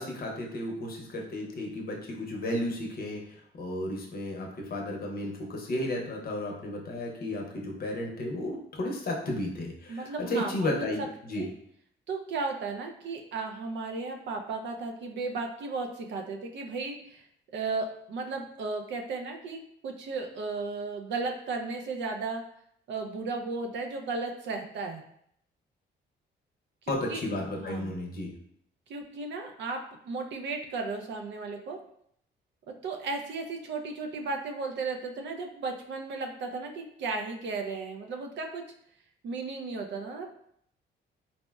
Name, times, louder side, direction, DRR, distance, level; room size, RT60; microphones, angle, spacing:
voice 1, 0.0-3.2 3.6-11.5 26.9-28.3, left 1 dB, 50° left, 0 dB, 0.7 m, -33 dB
voice 2, 9.9-11.1 11.3-11.5 12.1-17.3 17.5-22.4 22.9-25.0 26.8-27.2 27.6-28.0 28.9-29.8 30.0-31.8 32.8-38.6 39.2-40.3, right 3 dB, 65° right, 3 dB, 0.5 m, -35 dB
4.0 x 2.0 x 2.3 m, 0.70 s
cardioid pair, 90°, 20 cm